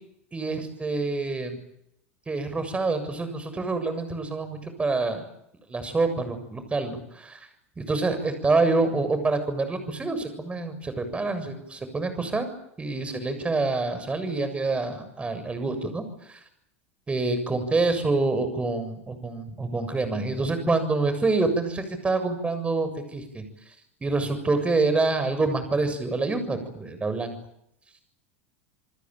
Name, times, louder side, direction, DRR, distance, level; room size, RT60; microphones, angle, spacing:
voice 1, 0.3-1.6 2.3-5.2 5.7-7.4 7.8-12.5 12.8-16.4 17.1-23.4 24.0-27.4, right 3 dB, 15° right, 10 dB, 7.2 m, -26 dB
29.5 x 20.0 x 9.1 m, 0.77 s
hypercardioid pair, 95°, 7 cm